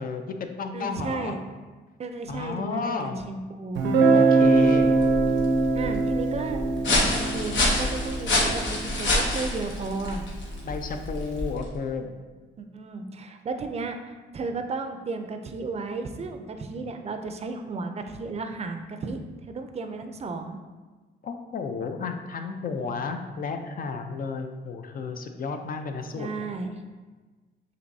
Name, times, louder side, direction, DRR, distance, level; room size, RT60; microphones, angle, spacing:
voice 1, 0.0-1.4 2.3-3.2 4.1-5.0 10.6-12.1 21.2-26.5, left 4 dB, 50° left, 6 dB, 0.5 m, -32 dB
voice 2, 0.7-1.4 2.0-3.9 5.8-10.2 12.6-20.6 26.1-26.7, right 3 dB, 35° right, 6 dB, 0.5 m, -34 dB
Guitar, 3.8-9.5, right 3 dB, 80° right, 0.7 m, -23 dB
sound 1, 4.4-11.8, left 2 dB, 75° left, 1.1 m, -28 dB
6.7 x 2.6 x 2.7 m, 1.3 s
cardioid pair, 75°, 19 cm